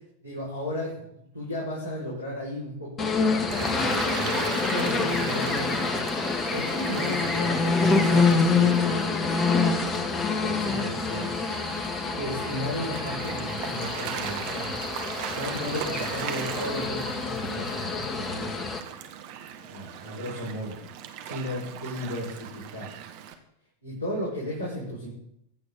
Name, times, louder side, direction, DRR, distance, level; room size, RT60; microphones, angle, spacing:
voice 1, 0.2-14.9 15.3-18.7 19.6-20.8 21.2-22.9 23.8-25.1, equal, 90° right, -8 dB, 5.7 m, -35 dB
sound 1, 3.0-18.8, left 4 dB, 20° left, 1.6 m, -26 dB
Gull seagull / Waves surf, 3.5-23.3, right 9 dB, 50° right, 1.5 m, -39 dB
24.0 x 8.6 x 4.0 m, 0.77 s
figure-of-eight pair, 90°, 0 cm